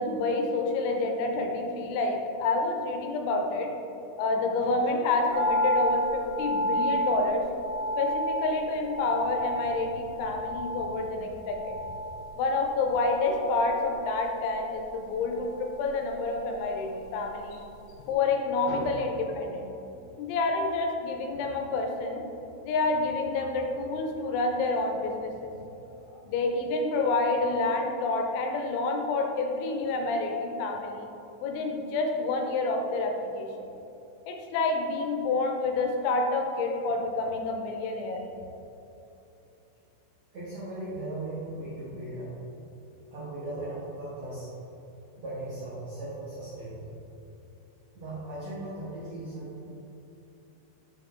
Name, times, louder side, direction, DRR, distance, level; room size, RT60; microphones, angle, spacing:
voice 1, 0.0-3.7 4.2-7.4 8.0-11.7 12.4-17.6 18.0-19.1 19.3-19.6 20.2-22.2 22.6-25.5 26.1-31.1 31.4-33.5 34.3-38.2, left 3 dB, 80° left, 3 dB, 3.0 m, -28 dB
sound 1, 5.3-17.6 17.9-18.0, equal, 60° left, 2.5 m, -32 dB
voice 2, 40.3-42.4 43.1-44.5 45.2-46.9 47.9-49.7, right 1 dB, 80° right, -10 dB, 1.5 m, -38 dB
6.9 x 5.8 x 3.7 m, 3.0 s
omnidirectional pair, 5.6 m